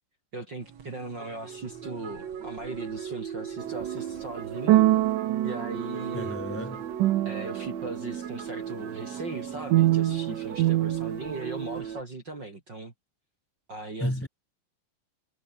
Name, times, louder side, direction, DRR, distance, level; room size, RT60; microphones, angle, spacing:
voice 1, 0.3-4.8 5.4-6.4 7.2-12.9 13.7-14.3, right 2 dB, 30° right, 3.3 m, -38 dB
sound 1, 0.6-12.0, right 8 dB, 45° right, 2.9 m, -38 dB
sound 2, 3.6-7.9 9.7-11.8, right 15 dB, 75° right, 1.9 m, -26 dB
voice 2, 6.1-6.9 14.0-14.3, left 1 dB, 5° left, 4.1 m, -32 dB
omnidirectional pair, 4.9 m